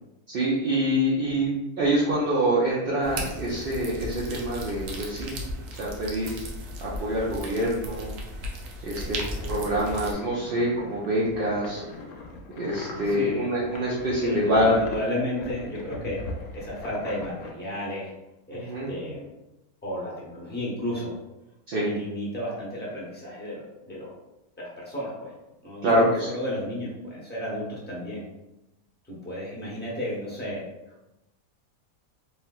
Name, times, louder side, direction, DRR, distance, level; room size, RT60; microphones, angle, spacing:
voice 1, 0.3-5.4 5.8-6.4 6.8-8.1 8.8-9.2 9.5-11.8 12.6-14.8 18.5-18.9 21.7-21.9 25.8-26.3, equal, 65° right, -6 dB, 0.5 m, -25 dB
sound 1, 3.0-10.1, equal, 85° right, 1.1 m, -36 dB
voice 2, 8.7-9.1 13.0-13.5 14.2-16.2 16.5-18.1 18.5-19.3 19.8-21.1 21.8-24.1 24.6-25.3 25.6-28.2 29.1-30.6, left 1 dB, 10° left, -6 dB, 0.6 m, -33 dB
sound 2, 9.1-17.5, left 2 dB, 80° left, 1.0 m, -39 dB
3.2 x 2.8 x 2.3 m, 0.95 s
omnidirectional pair, 1.5 m